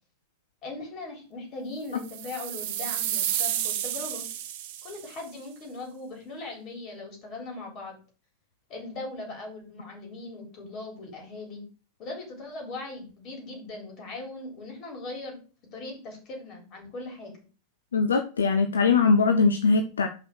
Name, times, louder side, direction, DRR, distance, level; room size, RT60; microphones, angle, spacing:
voice 1, 0.6-4.2 4.8-8.0 8.7-11.6 12.0-15.4 15.7-17.4, left 2 dB, 35° left, 1 dB, 3.9 m, -39 dB
sound 1, 2.0-5.2, right 11 dB, 50° right, 0.9 m, -31 dB
voice 2, 17.9-20.1, left 4 dB, 70° left, 7 dB, 0.7 m, -21 dB
6.0 x 5.5 x 6.2 m, 0.36 s
figure-of-eight pair, 90°, 0 cm